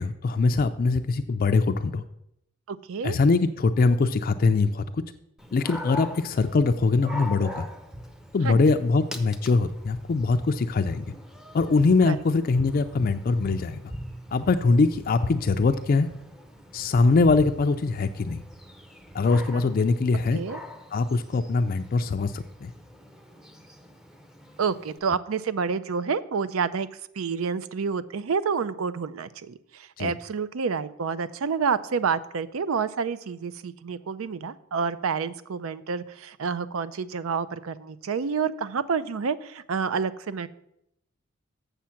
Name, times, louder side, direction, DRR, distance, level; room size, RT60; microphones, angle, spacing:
voice 1, 0.0-2.0 3.0-5.0 5.5-7.7 8.3-11.1 11.5-13.8 14.3-16.1 16.7-18.4 19.1-20.4 20.9-22.7 30.0-30.1, left 3 dB, 45° left, 8 dB, 0.4 m, -22 dB
voice 2, 2.7-3.2 8.4-8.6 12.1-12.2 19.5-19.6 20.3-20.6 24.6-26.9 27.2-40.5, right 5 dB, 80° right, 15 dB, 0.5 m, -29 dB
Dog, 5.4-25.0, left 1 dB, 5° right, 0.6 m, -41 dB
7.4 x 6.8 x 5.7 m, 0.78 s
head